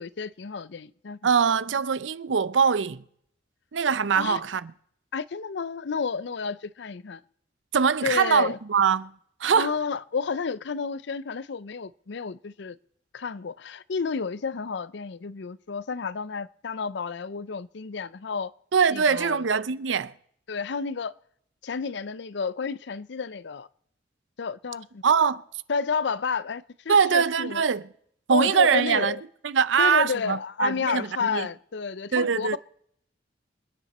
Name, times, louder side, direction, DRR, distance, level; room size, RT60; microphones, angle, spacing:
voice 1, 0.0-1.3 4.2-4.4 5.1-7.2 8.0-8.6 9.5-12.8 13.1-18.5 18.9-19.5 20.5-21.1 21.6-23.7 24.4-25.0 25.7-27.6 28.3-29.2 29.8-32.6, left 5 dB, 70° left, 0.5 m, -31 dB
voice 2, 1.2-3.0 3.7-4.7 7.7-9.1 9.4-9.8 18.7-20.1 25.0-25.4 26.9-27.8 28.3-29.2 29.4-31.5 32.1-32.6, right 6 dB, 90° right, 0.6 m, -23 dB
27.0 x 10.0 x 4.2 m
head